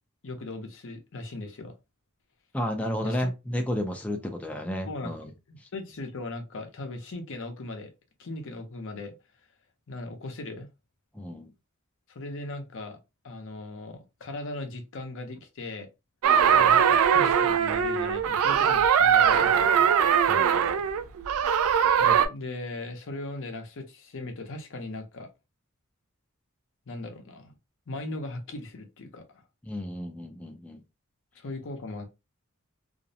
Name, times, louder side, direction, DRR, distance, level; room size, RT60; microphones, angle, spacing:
voice 1, 0.2-1.8 3.0-3.3 4.9-5.2 5.5-7.9 8.2-9.1 9.9-10.7 12.1-13.0 13.2-15.9 16.6-19.9 22.0-25.3 26.9-27.5 27.9-29.4 31.3-32.1, left 2 dB, 60° left, 0.6 m, -38 dB
voice 2, 2.5-5.3 11.1-11.5 20.3-20.7 29.6-30.8, equal, 5° left, 0.4 m, -32 dB
sound 1, 16.2-22.3, right 8 dB, 70° right, 0.3 m, -21 dB
2.5 x 2.0 x 2.6 m
head